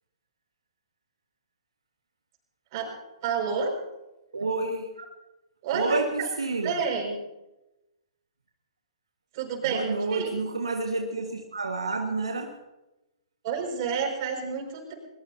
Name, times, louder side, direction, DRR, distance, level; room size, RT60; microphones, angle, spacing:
voice 1, 3.2-3.7 5.6-6.0 6.6-7.2 9.3-9.8 10.1-10.3 13.4-14.9, right 6 dB, 45° right, 2 dB, 5.8 m, -29 dB
voice 2, 4.3-5.1 5.7-6.8 9.6-12.5, right 3 dB, 85° right, 3 dB, 1.6 m, -29 dB
21.5 x 21.5 x 2.8 m, 0.99 s
hypercardioid pair, 120°, 3 cm